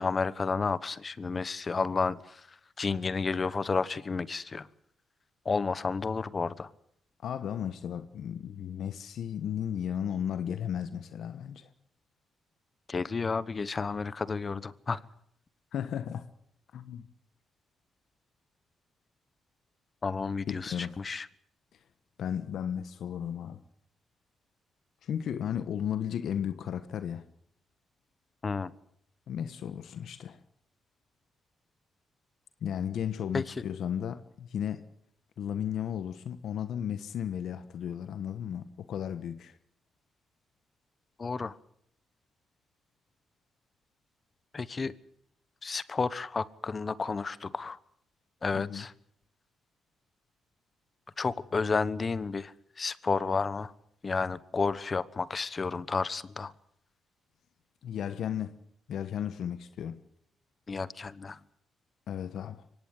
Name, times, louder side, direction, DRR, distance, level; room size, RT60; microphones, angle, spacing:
voice 1, 0.0-2.4 2.8-4.7 5.4-6.7 12.9-15.0 20.0-21.3 28.4-28.7 33.3-33.4 41.2-41.6 44.5-44.9 45.6-47.8 48.4-48.9 51.2-53.7 54.0-56.5 60.7-61.4, left 4 dB, 35° left, 1.0 m, -31 dB
voice 2, 7.2-11.7 15.7-16.3 16.7-17.1 20.5-21.0 22.2-23.6 25.0-27.3 29.3-30.4 32.6-34.9 35.4-39.6 48.5-48.8 57.8-58.6 58.9-60.0 62.1-62.6, left 9 dB, 70° left, 1.2 m, -34 dB
24.0 x 18.0 x 8.2 m
cardioid pair, 90°, 0 cm